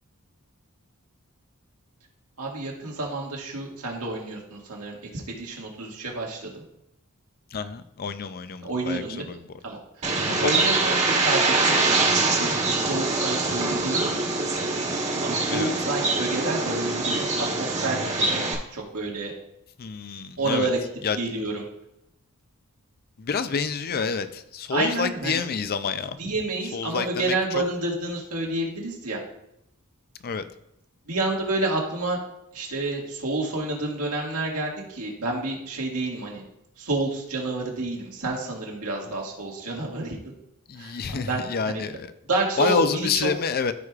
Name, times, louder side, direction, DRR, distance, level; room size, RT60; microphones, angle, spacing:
voice 1, 2.4-5.0 5.3-6.6 8.6-9.3 9.6-14.0 15.2-18.4 18.7-19.3 20.4-20.8 21.2-21.7 24.7-25.4 26.2-29.2 31.1-32.2 32.5-36.4 36.8-40.2 40.8-41.0 41.3-41.8 42.3-43.3, right 2 dB, 85° right, -2 dB, 1.9 m, -29 dB
voice 2, 7.5-9.4 10.2-10.6 15.5-15.7 19.8-20.7 21.0-21.2 23.2-26.2 26.7-27.6 30.2-30.4 40.7-42.1 42.6-43.7, left 5 dB, 45° left, 11 dB, 0.5 m, -28 dB
Bird, 10.0-18.5, right 3 dB, 35° right, 1.3 m, -24 dB
14.5 x 4.8 x 2.4 m, 0.82 s
head